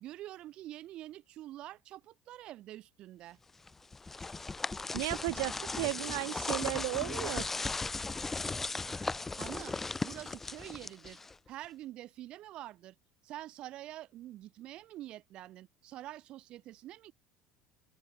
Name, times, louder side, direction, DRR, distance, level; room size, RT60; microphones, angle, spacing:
voice 1, 0.0-3.4 9.3-11.2 11.5-12.9 13.2-17.1, right 14 dB, 50° right, 0.8 m, -46 dB
sound 1, 3.7-11.5, left 3 dB, 10° left, 0.4 m, -37 dB
voice 2, 4.9-7.5, right 31 dB, 85° right, 0.6 m, -34 dB
open air
cardioid pair, 135°, 2 cm